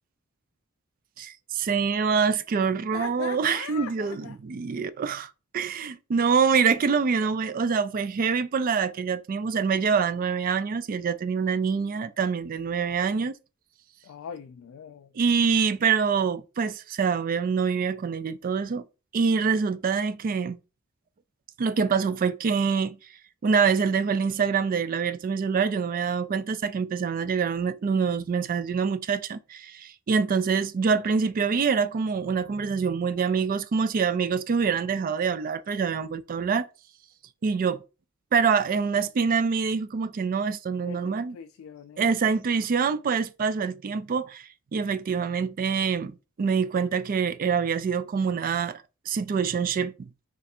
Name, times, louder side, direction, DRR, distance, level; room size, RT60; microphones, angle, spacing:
voice 1, 1.2-13.3 15.2-18.8 19.1-20.6 21.6-23.0 23.4-36.7 37.4-37.8 38.3-41.4 42.0-44.4 44.7-50.1, right 5 dB, 45° right, 0.3 m, -25 dB
voice 2, 2.6-4.4 14.0-15.1 40.8-42.4 42.8-43.0, left 7 dB, 75° left, 0.3 m, -41 dB
3.1 x 2.5 x 4.2 m
head